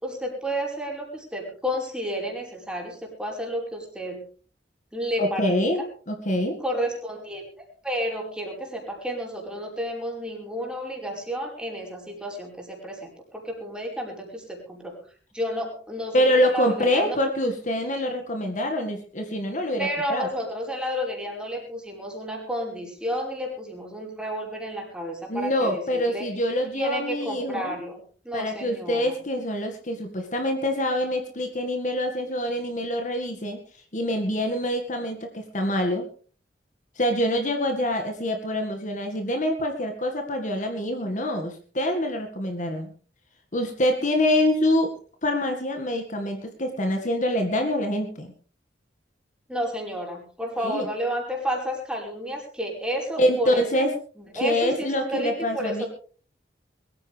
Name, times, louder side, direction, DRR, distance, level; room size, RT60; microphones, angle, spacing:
voice 1, 0.0-4.2 4.9-5.9 6.6-7.5 7.8-15.0 15.3-17.2 19.8-26.3 26.7-28.0 28.3-29.1 49.5-53.9 54.2-55.9, equal, 5° right, 0 dB, 5.2 m, -31 dB
voice 2, 5.2-5.8 6.1-6.6 16.1-20.3 25.3-27.8 28.3-33.6 33.9-36.1 37.0-42.9 43.5-44.9 45.2-48.3 50.6-50.9 53.2-53.9 54.3-55.8, left 1 dB, 45° left, 4 dB, 2.0 m, -25 dB
22.0 x 14.5 x 3.5 m, 0.42 s
head